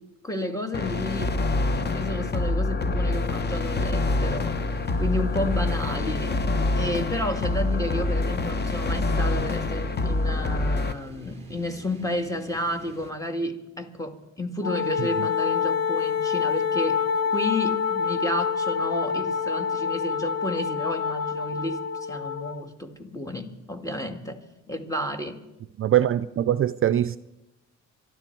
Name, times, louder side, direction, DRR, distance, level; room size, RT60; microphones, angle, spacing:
voice 1, 0.2-1.4 1.8-4.6 5.0-6.4 6.8-17.0 17.3-25.4, left 1 dB, 10° left, 1.9 m, -31 dB
sound 1, 0.7-10.9, left 2 dB, 35° left, 1.1 m, -26 dB
sound 2, 4.7-13.1, right 3 dB, 20° right, 3.3 m, -48 dB
Wind instrument woodwind instrument, 14.6-22.6, left 6 dB, 55° left, 0.9 m, -26 dB
voice 2, 25.8-27.2, right 11 dB, 45° right, 0.4 m, -22 dB
24.0 x 12.5 x 4.6 m
cardioid pair, 90°, 30 cm